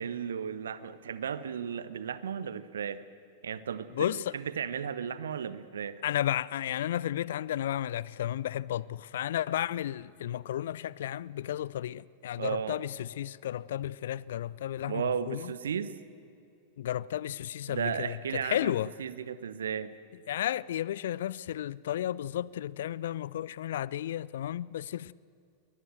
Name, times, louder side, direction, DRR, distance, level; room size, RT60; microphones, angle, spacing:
voice 1, 0.0-3.0 3.4-6.0 12.4-12.8 14.8-15.9 17.7-18.7 19.0-19.9, right 7 dB, 65° right, 1.0 m, -34 dB
voice 2, 4.0-4.4 6.0-15.5 16.8-18.9 20.3-25.1, left 11 dB, 60° left, 0.4 m, -33 dB
22.5 x 19.5 x 7.8 m
figure-of-eight pair, 90°, 0 cm